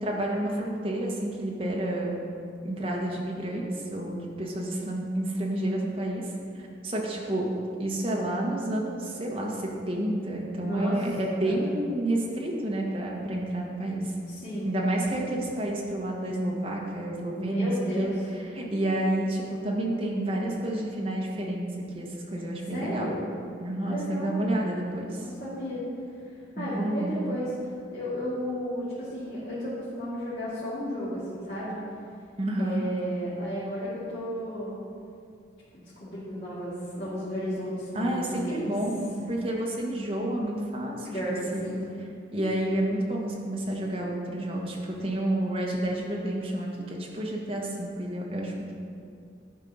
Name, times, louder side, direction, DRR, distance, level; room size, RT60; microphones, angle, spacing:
voice 1, 0.0-2.2 2.6-6.3 6.8-7.5 7.8-14.1 14.6-21.7 21.9-23.1 23.6-25.3 26.6-27.1 32.4-32.9 37.9-41.2 41.5-41.7 42.3-48.7, right 1 dB, 30° right, -2 dB, 1.2 m, -30 dB
voice 2, 10.6-10.9 11.4-11.6 14.3-14.7 17.3-18.1 22.7-23.2 23.8-24.4 25.2-25.8 26.6-27.5 27.9-31.8 32.6-34.8 35.7-38.7 41.1-41.8, equal, 50° left, -12 dB, 2.2 m, -33 dB
11.0 x 4.5 x 5.4 m, 2.4 s
head